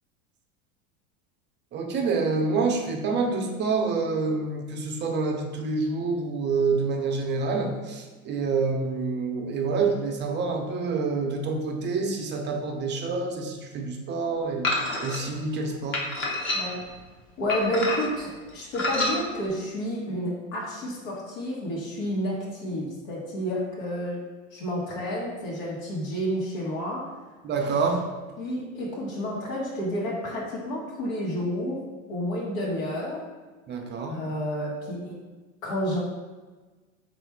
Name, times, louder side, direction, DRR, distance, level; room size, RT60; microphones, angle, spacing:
voice 1, 1.7-16.1 27.4-28.1 33.7-34.2, right 4 dB, 25° right, 2 dB, 0.5 m, -27 dB
sound 1, 14.6-15.2 15.9-16.9 17.5-18.2 18.7-19.2, left 2 dB, 30° left, 0.8 m, -27 dB
voice 2, 16.5-16.9 17.4-24.2 24.5-27.2 28.4-31.8 32.1-33.3 34.1-35.2 35.6-36.0, equal, 75° left, -4 dB, 1.1 m, -30 dB
3.5 x 2.5 x 4.4 m, 1.3 s
supercardioid pair, 110°, 40 cm